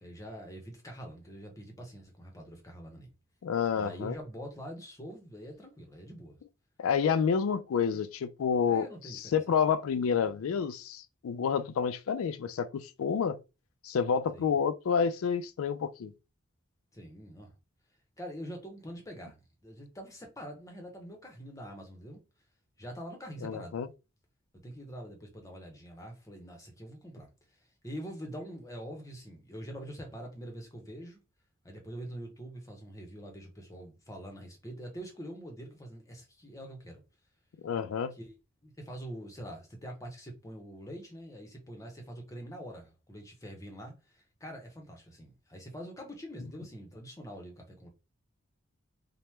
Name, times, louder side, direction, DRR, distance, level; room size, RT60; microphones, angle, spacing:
voice 1, 0.0-3.1 3.7-6.4 8.7-9.5 14.3-14.6 16.9-17.5 18.2-22.2 22.8-23.8 24.5-31.2 31.6-37.0 38.1-38.3 38.6-47.9, equal, 15° left, 0.7 m, -45 dB
voice 2, 3.4-4.1 6.8-13.4 13.8-16.1 23.4-23.9 37.6-38.1, left 6 dB, 80° left, 0.3 m, -29 dB
2.9 x 2.1 x 3.2 m
head